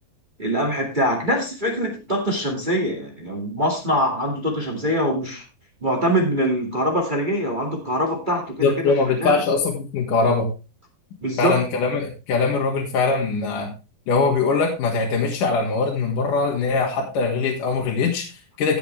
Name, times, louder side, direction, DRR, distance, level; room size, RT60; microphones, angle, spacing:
voice 1, 0.4-5.4 5.8-9.4 11.2-11.6, equal, 40° right, 2 dB, 0.6 m, -23 dB
voice 2, 8.6-10.5 11.4-13.7 14.1-18.8, left 4 dB, 55° left, -1 dB, 3.3 m, -22 dB
16.5 x 6.8 x 3.3 m, 0.29 s
omnidirectional pair, 5.0 m